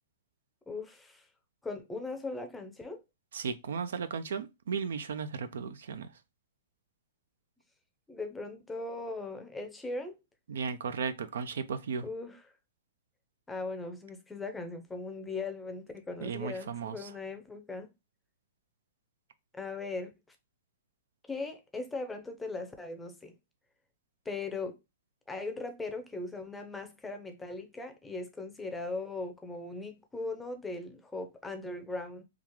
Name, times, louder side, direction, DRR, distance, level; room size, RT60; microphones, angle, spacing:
voice 1, 0.7-1.3 1.6-3.0 8.1-10.2 12.0-12.4 13.5-17.9 19.5-20.4 21.3-23.3 24.3-24.8 25.3-32.2, left 3 dB, 10° left, 0.6 m, -39 dB
voice 2, 3.3-6.1 10.5-12.1 16.2-17.1, right 6 dB, 75° right, 0.5 m, -35 dB
3.6 x 2.4 x 3.0 m
hypercardioid pair, 140°, 0 cm